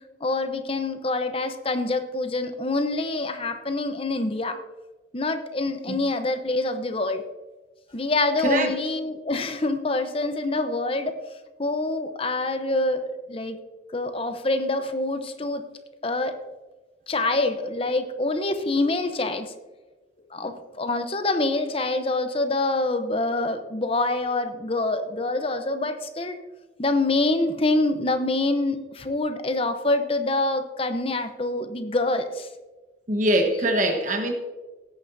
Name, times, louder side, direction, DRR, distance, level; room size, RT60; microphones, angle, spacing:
voice 1, 0.2-4.6 5.1-7.2 7.9-11.2 11.6-13.0 13.3-13.6 13.9-15.7 16.0-16.4 17.1-19.5 20.3-26.4 26.8-32.5 34.1-34.2, left 2 dB, 30° left, 8 dB, 0.8 m, -26 dB
voice 2, 33.1-34.3, right 1 dB, 45° right, 5 dB, 1.2 m, -22 dB
17.0 x 9.2 x 2.7 m, 1.2 s
head